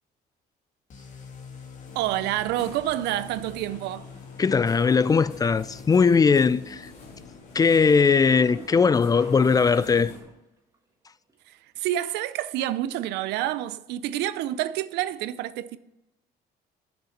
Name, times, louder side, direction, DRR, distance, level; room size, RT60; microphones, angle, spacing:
sound 1, 0.9-8.5, left 5 dB, 45° left, 1.8 m, -46 dB
sound 2, 1.8-10.2, left 3 dB, 70° left, 2.6 m, -47 dB
voice 1, 1.9-4.1 11.5-15.8, right 13 dB, 85° right, 0.5 m, -28 dB
voice 2, 4.4-6.9 7.5-10.1, left 5 dB, 20° left, 0.3 m, -20 dB
sound 3, 8.1-10.4 10.7-10.8 11.3-11.4 15.2-15.3, right 2 dB, 20° right, 1.5 m, -46 dB
6.9 x 6.4 x 7.2 m
cardioid pair, 110°, 17 cm